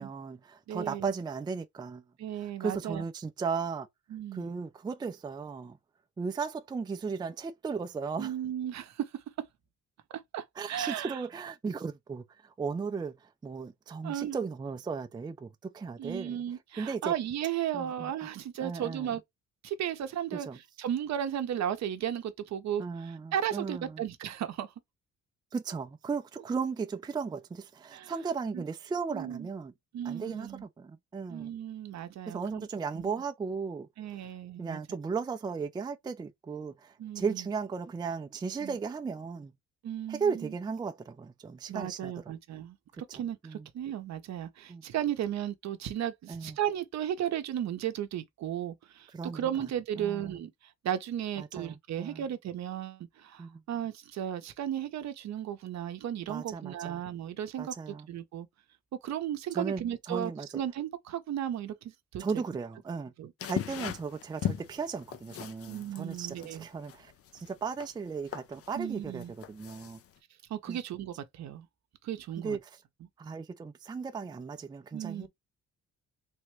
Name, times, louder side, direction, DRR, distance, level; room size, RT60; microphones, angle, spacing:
voice 1, 0.0-2.0 2.4-3.9 4.3-5.8 6.2-8.3 10.6-16.4 16.8-17.1 17.7-18.1 18.6-19.2 20.3-20.6 22.8-24.0 25.5-29.7 30.0-31.5 32.3-33.9 34.6-39.5 40.1-42.1 43.4-43.7 44.7-44.8 46.3-46.6 49.1-49.4 50.0-50.4 51.4-52.2 53.4-53.6 56.3-57.0 57.6-58.1 59.5-59.8 60.1-60.6 62.2-63.1 63.4-70.0 70.7-70.8 72.4-72.6 73.2-75.3, right 5 dB, 15° right, 0.4 m, -36 dB
voice 2, 0.7-1.1 2.2-3.0 4.1-4.5 8.2-9.1 10.3-11.2 14.0-14.4 16.0-19.2 19.6-20.5 20.8-24.7 27.9-28.1 28.5-28.6 29.1-29.5 29.9-30.7 31.3-32.7 33.0-33.1 34.0-34.8 37.0-37.4 38.6-38.8 39.8-40.5 41.7-57.7 58.1-58.5 59.0-62.4 63.2-63.3 65.7-66.6 68.7-69.3 70.5-71.7 72.0-72.6 74.9-75.3, right 10 dB, 65° right, 0.7 m, -35 dB
sound 1, 63.4-70.2, left 9 dB, 50° left, 0.5 m, -39 dB
3.5 x 2.1 x 3.0 m
cardioid pair, 90°, 30 cm